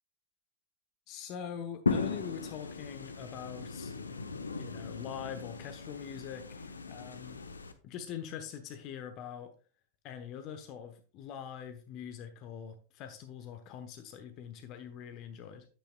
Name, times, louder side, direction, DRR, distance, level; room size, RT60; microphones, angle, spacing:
voice 1, 1.1-3.9 4.5-7.4 7.8-9.5 10.0-15.7, left 8 dB, 40° left, 8 dB, 1.0 m, -43 dB
sound 1, 1.9-7.7, left 4 dB, 75° left, 0.9 m, -37 dB
10.0 x 9.1 x 2.3 m, 0.39 s
figure-of-eight pair, 90°, 0 cm